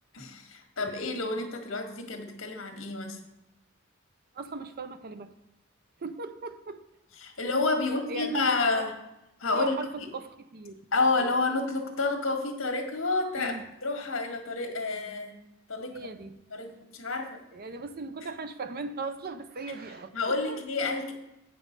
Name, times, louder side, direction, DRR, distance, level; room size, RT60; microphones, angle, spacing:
voice 1, 0.1-3.2 7.2-8.9 9.4-9.8 10.9-13.5 13.8-15.3 15.7-16.0 16.5-17.4 20.1-21.1, left 3 dB, 70° left, 4 dB, 1.7 m, -29 dB
voice 2, 4.3-5.3 6.0-6.8 8.1-8.9 9.5-10.9 13.3-13.7 15.9-16.4 17.5-20.6, right 3 dB, 45° right, 11 dB, 0.6 m, -38 dB
8.5 x 5.2 x 6.5 m, 0.92 s
head